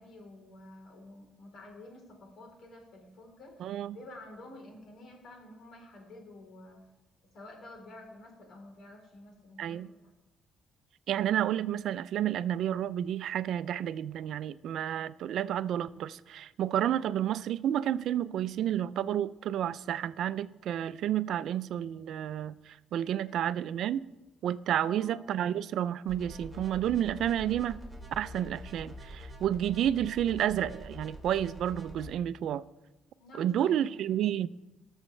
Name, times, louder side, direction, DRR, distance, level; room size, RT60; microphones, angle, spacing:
voice 1, 0.0-6.8 7.3-10.1 23.3-23.4 24.8-25.1 33.2-33.9, left 2 dB, 65° left, 3.6 m, -50 dB
voice 2, 3.6-4.0 9.6-9.9 11.1-24.0 24.4-27.8 28.2-32.6 33.4-34.5, right 11 dB, 75° right, 0.4 m, -30 dB
sound 1, 26.1-32.1, equal, 5° right, 3.1 m, -46 dB
19.0 x 7.2 x 3.3 m
cardioid pair, 90°, 0 cm